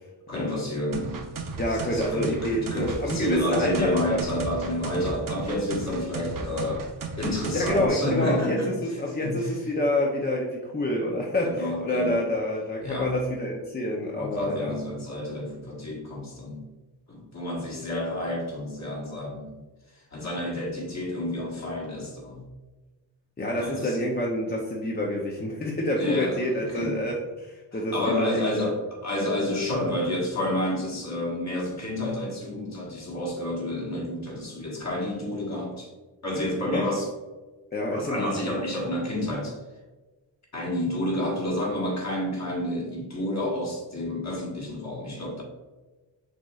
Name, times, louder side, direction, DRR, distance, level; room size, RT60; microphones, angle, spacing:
voice 1, 0.3-1.3 1.7-6.9 7.2-8.8 9.2-9.5 11.4-12.2 12.8-13.1 14.2-16.6 17.1-19.6 19.9-22.4 23.6-24.0 26.0-27.0 27.7-35.9 36.2-37.1 37.9-39.6 40.5-45.4, left 1 dB, 40° left, -2 dB, 1.4 m, -30 dB
sound 1, 0.9-7.9, right 4 dB, 50° right, 0.7 m, -35 dB
voice 2, 1.6-4.2 7.5-14.7 23.4-27.1 27.4-28.8 36.7-36.9 37.7-38.3, left 1 dB, 25° left, -2 dB, 0.5 m, -27 dB
6.3 x 3.0 x 2.3 m, 1.2 s
wide cardioid pair, 100°, 43 cm